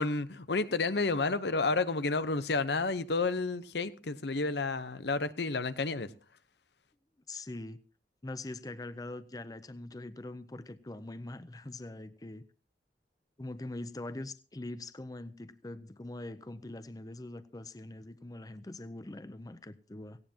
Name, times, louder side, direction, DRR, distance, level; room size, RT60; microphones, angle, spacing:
voice 1, 0.0-6.1, left 3 dB, 70° left, 0.9 m, -30 dB
voice 2, 7.3-7.8 8.2-12.4 13.4-20.2, left 2 dB, 20° left, 0.6 m, -43 dB
17.5 x 17.0 x 2.9 m
head